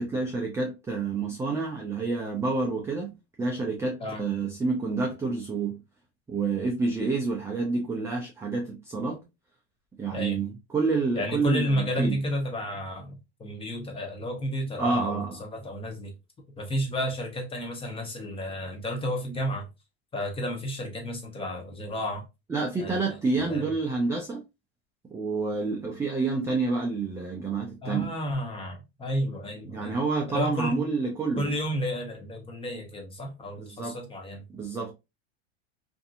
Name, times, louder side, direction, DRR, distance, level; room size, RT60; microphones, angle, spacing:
voice 1, 0.0-3.1 3.4-5.8 6.3-9.2 10.0-12.2 14.8-15.4 22.5-24.4 25.1-28.1 29.6-31.5 33.6-34.0 34.5-34.9, right 4 dB, 10° right, 0.4 m, -28 dB
voice 2, 11.1-16.1 16.6-19.7 20.1-22.2 22.8-23.2 23.5-23.7 27.8-30.0 30.3-30.9 31.4-34.4, equal, 15° left, 0.8 m, -31 dB
2.6 x 2.6 x 2.4 m
supercardioid pair, 120°, 33 cm